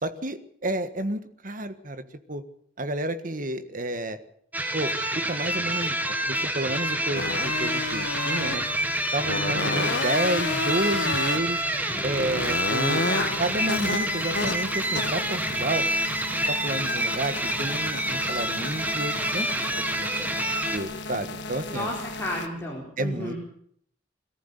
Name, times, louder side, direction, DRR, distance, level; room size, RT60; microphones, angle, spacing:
voice 1, 0.0-2.0 2.3-2.4 2.8-4.2 4.7-4.9 5.3-6.0 6.2-8.6 9.1-11.6 12.0-13.0 13.4-15.8 16.3-19.7 20.0-20.3 20.7-21.9 23.0-23.3, right 1 dB, 50° right, 10 dB, 1.6 m, -30 dB
sound 1, 4.5-20.8, right 1 dB, 10° right, 1.9 m, -28 dB
sound 2, 7.1-22.5, left 3 dB, 80° left, 1.6 m, -32 dB
voice 2, 12.9-13.3 21.7-23.4, left 1 dB, 15° left, -4 dB, 4.5 m, -32 dB
22.0 x 14.0 x 8.3 m, 0.66 s
head